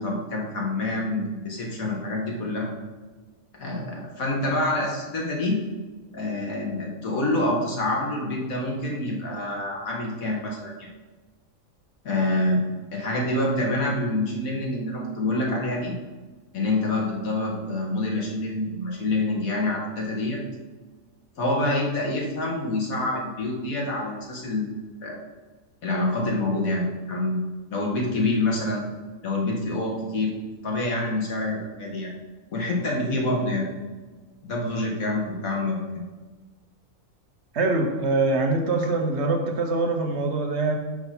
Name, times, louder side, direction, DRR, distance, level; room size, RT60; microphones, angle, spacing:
voice 1, 0.0-2.7 3.6-5.6 6.1-10.9 12.0-12.6 12.9-15.9 16.5-20.4 21.4-25.2 25.8-27.4 27.7-28.8 29.2-30.3 30.6-32.1 32.5-33.7 34.4-35.8, left 2 dB, 90° left, -2 dB, 1.9 m, -26 dB
voice 2, 37.5-40.8, right 3 dB, 55° right, 3 dB, 1.1 m, -24 dB
5.9 x 5.4 x 5.8 m, 1.3 s
omnidirectional pair, 1.4 m